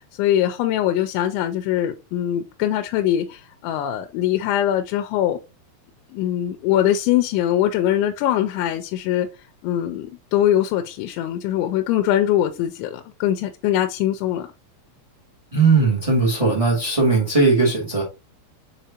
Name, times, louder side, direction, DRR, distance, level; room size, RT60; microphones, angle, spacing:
voice 1, 0.2-5.4 6.1-9.3 9.6-14.5, left 11 dB, 90° left, 2.9 m, -22 dB
voice 2, 15.5-18.0, right 3 dB, 25° right, 0.6 m, -18 dB
6.7 x 4.9 x 2.8 m
omnidirectional pair, 5.2 m